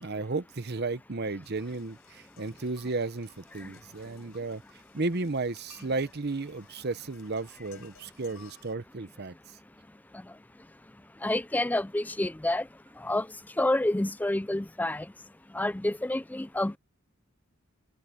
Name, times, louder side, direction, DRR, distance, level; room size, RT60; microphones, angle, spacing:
voice 1, 0.0-4.6 4.9-9.3, right 3 dB, 45° right, 0.8 m, -33 dB
sound 1, 1.4-8.8, left 7 dB, 70° left, 4.9 m, -59 dB
voice 2, 11.2-12.7 13.0-13.3 13.6-15.1 15.5-16.8, left 1 dB, 5° left, 0.4 m, -28 dB
head